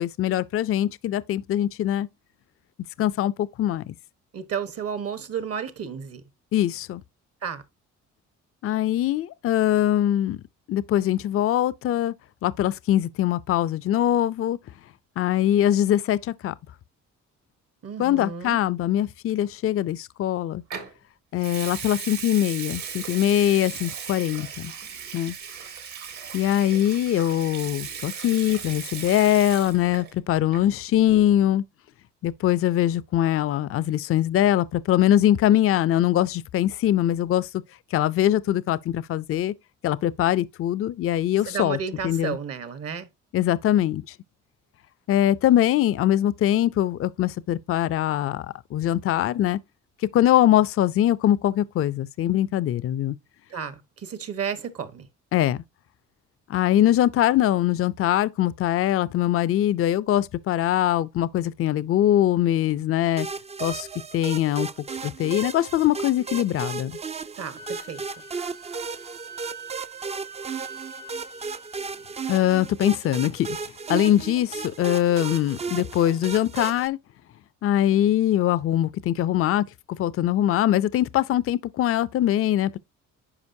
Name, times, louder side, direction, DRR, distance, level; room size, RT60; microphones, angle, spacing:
voice 1, 0.0-2.1 3.0-3.9 6.5-7.0 8.6-10.4 10.7-12.1 12.4-14.6 15.2-16.5 18.0-20.6 21.3-24.7 25.1-25.4 26.3-31.6 32.2-37.5 37.9-39.5 39.8-41.8 42.0-42.4 43.3-44.1 45.1-49.6 50.1-53.2 55.3-55.6 56.5-63.3 63.6-63.9 64.1-64.7 65.0-67.0 72.3-73.6 73.9-77.0 77.6-82.8, left 12 dB, 50° left, 0.4 m, -22 dB
voice 2, 4.3-6.2 7.4-7.6 17.8-18.6 41.5-43.1 53.5-55.1 67.4-68.0, right 7 dB, 50° right, 1.1 m, -32 dB
Water tap faucet / Sink (filling or washing) / Liquid, 20.7-20.9 21.4-30.1 30.4-30.8, right 7 dB, 70° right, 1.9 m, -37 dB
sound 1, 63.2-76.9, right 5 dB, 20° right, 0.4 m, -35 dB
Wind instrument woodwind instrument, 67.5-72.7, right 4 dB, 85° right, 2.7 m, -44 dB
9.7 x 5.1 x 2.7 m
cardioid pair, 90°, 30 cm